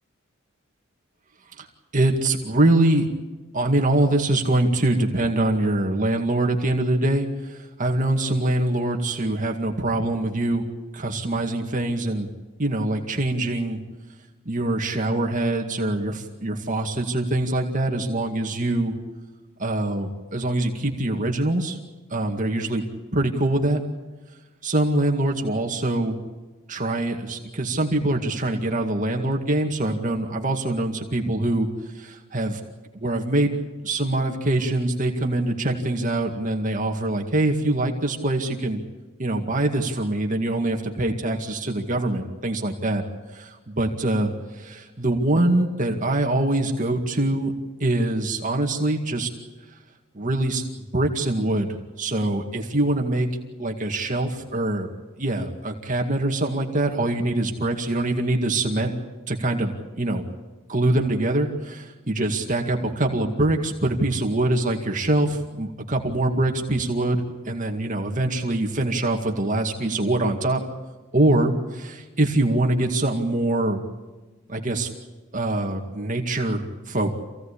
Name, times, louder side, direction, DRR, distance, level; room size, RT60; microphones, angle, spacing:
voice 1, 1.9-3.1 3.5-10.6 10.9-12.3 12.6-13.8 14.5-18.9 19.6-21.8 22.1-22.8 23.1-23.8 24.6-26.2 26.7-31.7 31.9-32.6 32.9-33.5 33.8-38.8 39.2-43.0 43.3-47.5 47.8-49.3 50.1-50.6 50.9-53.3 53.6-54.9 55.2-58.9 59.3-60.2 60.7-70.6 71.1-73.8 74.5-74.9 75.3-77.1, right 1 dB, 40° right, 2 dB, 2.1 m, -24 dB
27.0 x 17.0 x 8.5 m, 1.2 s
head